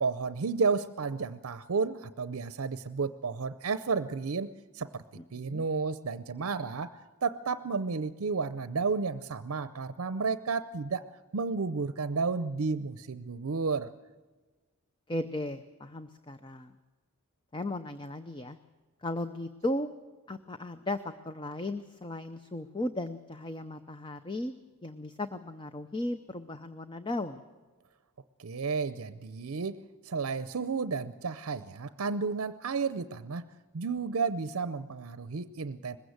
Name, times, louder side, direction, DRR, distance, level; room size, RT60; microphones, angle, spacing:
voice 1, 0.0-5.0 5.3-6.9 7.2-11.0 11.3-13.9 28.4-29.8 30.0-33.4 33.7-36.0, right 4 dB, 70° right, 13 dB, 0.6 m, -32 dB
voice 2, 5.2-5.6 15.1-16.7 17.5-18.6 19.0-19.9 20.3-24.5 24.8-27.4, left 1 dB, 20° left, 10 dB, 0.6 m, -36 dB
20.5 x 16.0 x 8.0 m, 1.3 s
head